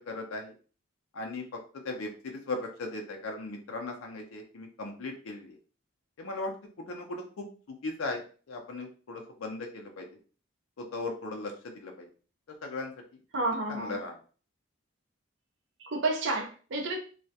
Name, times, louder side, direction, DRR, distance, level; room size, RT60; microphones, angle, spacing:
voice 1, 0.1-0.5 1.1-1.4 1.8-5.5 6.2-6.5 6.9-7.5 7.8-10.1 10.8-12.1 12.6-12.9 13.7-14.1, left 2 dB, 85° left, 0.5 m, -37 dB
voice 2, 13.3-14.0 15.8-17.0, right 2 dB, 60° right, 0.5 m, -30 dB
2.3 x 2.0 x 2.7 m
head